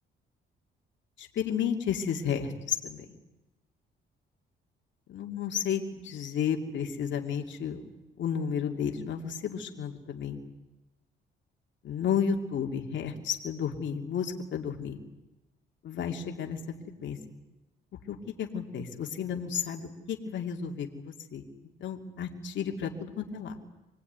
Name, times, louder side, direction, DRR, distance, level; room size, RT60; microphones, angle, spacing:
voice 1, 1.2-3.0 5.1-7.8 8.2-10.4 11.8-15.0 15.8-16.6 17.0-17.2 18.1-21.4 21.8-23.5, left 7 dB, 70° left, 2 dB, 2.8 m, -32 dB
25.5 x 19.5 x 9.5 m, 1.0 s
cardioid pair, 90°, 20 cm